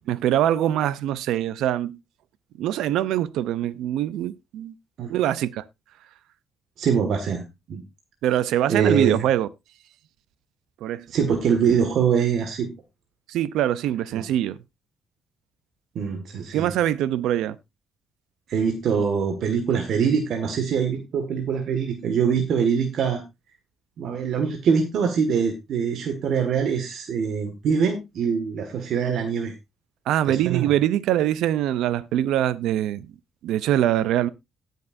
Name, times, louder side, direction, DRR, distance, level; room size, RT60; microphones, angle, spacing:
voice 1, 0.1-2.0 2.6-4.7 5.1-5.6 8.2-9.5 10.8-11.0 13.3-14.6 16.5-17.6 30.1-33.1 33.4-34.3, right 12 dB, 85° right, 0.6 m, -23 dB
voice 2, 6.8-7.8 8.7-9.2 11.1-12.7 15.9-16.7 18.5-23.2 24.0-29.5 30.3-30.7, right 6 dB, 70° right, 1.7 m, -23 dB
18.5 x 6.6 x 2.6 m
cardioid pair, 90°, 0 cm